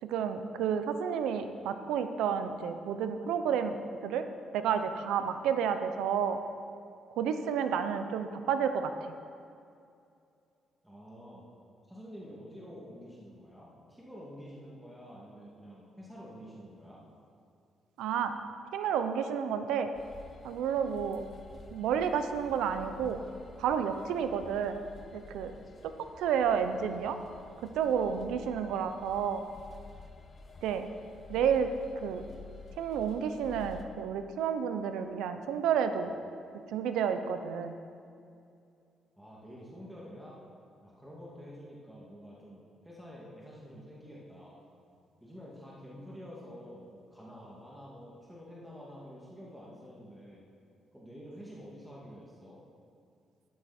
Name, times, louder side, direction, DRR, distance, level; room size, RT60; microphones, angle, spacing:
voice 1, 0.0-4.2 4.5-6.4 7.2-8.9 18.0-18.3 18.7-19.9 20.4-21.2 21.7-23.2 23.6-24.8 25.1-25.6 25.8-27.2 27.6-29.4 30.6-30.9 31.3-31.7 32.0-32.3 32.8-36.1 36.7-37.8, right 7 dB, 90° right, 9 dB, 0.7 m, -30 dB
voice 2, 10.8-11.4 11.9-17.0 39.2-40.4 40.8-44.6 45.2-50.4 50.9-52.6, equal, 5° right, -6 dB, 2.4 m, -48 dB
sound 1, 19.9-33.8, left 4 dB, 40° left, 1.1 m, -51 dB
12.5 x 11.0 x 4.4 m, 2.5 s
cardioid pair, 90°, 0 cm